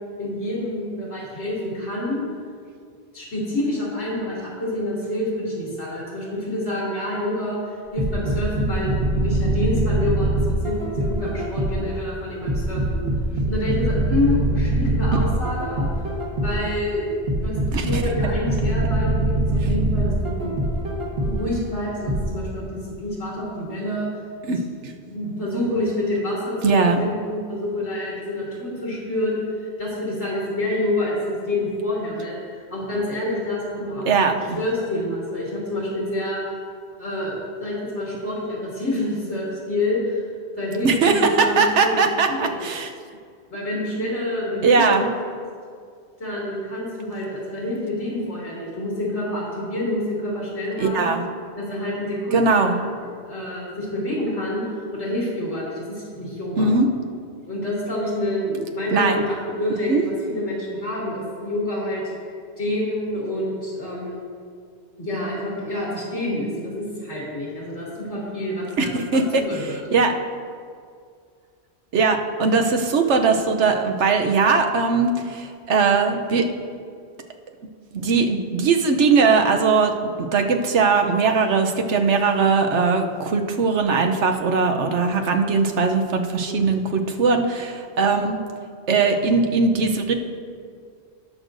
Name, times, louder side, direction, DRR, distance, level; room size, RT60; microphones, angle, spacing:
voice 1, 0.2-2.2 3.1-7.6 7.9-13.0 13.5-15.8 16.4-17.1 17.4-20.5 21.2-24.1 24.5-24.6 25.1-29.4 29.8-34.1 34.6-36.4 37.0-37.3 37.6-40.2 40.6-42.6 43.5-44.9 46.2-51.1 51.6-52.7 53.2-54.6 54.9-56.7 57.5-62.0 62.6-64.2 65.0-69.8 86.5-86.6, left 1 dB, 85° left, -6 dB, 3.1 m, -27 dB
sound 1, 8.0-11.9 12.5-16.7 17.3-21.5 22.1-22.2, right 1 dB, 60° right, 1.7 m, -23 dB
voice 2, 17.7-18.0 24.4-24.9 26.6-27.0 34.0-34.6 40.8-42.9 44.6-45.1 50.8-51.2 52.3-52.7 56.6-56.9 58.9-59.2 59.9-60.0 68.8-69.4 69.9-70.1 71.9-76.5 77.9-88.4 88.9-90.1, right 4 dB, 85° right, 5 dB, 1.1 m, -20 dB
18.5 x 6.3 x 2.6 m, 2.2 s
omnidirectional pair, 1.1 m